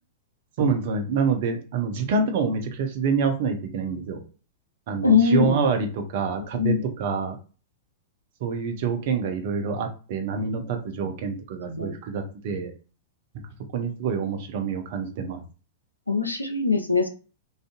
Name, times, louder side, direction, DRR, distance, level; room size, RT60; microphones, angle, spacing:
voice 1, 0.6-4.2 4.9-7.4 8.4-12.7 13.7-15.4, right 5 dB, 50° right, 5 dB, 0.6 m, -26 dB
voice 2, 5.0-5.6 6.5-6.8 11.7-11.9 16.1-17.1, left 5 dB, 90° left, 5 dB, 0.5 m, -21 dB
2.5 x 2.4 x 2.5 m, 0.36 s
figure-of-eight pair, 100°, 0 cm